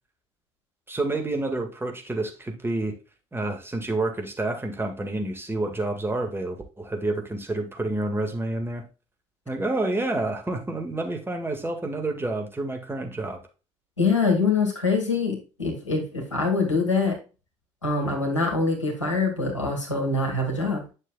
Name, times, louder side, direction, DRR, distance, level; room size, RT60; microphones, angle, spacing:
voice 1, 0.9-3.0 3.3-8.8 9.5-13.4, right 2 dB, 15° right, 1.9 m, -29 dB
voice 2, 14.0-17.2 17.8-20.8, left 3 dB, 85° left, 2.0 m, -24 dB
10.0 x 6.6 x 2.4 m
figure-of-eight pair, 55°, 15 cm